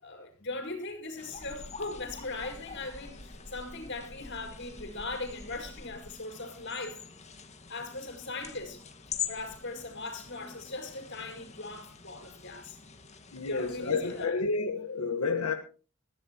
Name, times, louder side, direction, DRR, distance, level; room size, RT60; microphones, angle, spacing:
voice 1, 0.0-7.0 7.7-8.8 9.3-12.8 13.5-14.3, left 3 dB, 55° left, 5.2 m, -39 dB
sound 1, 1.2-14.3, left 6 dB, 30° left, 2.0 m, -45 dB
voice 2, 13.3-15.5, left 4 dB, 90° left, 1.5 m, -30 dB
21.0 x 15.5 x 3.0 m
head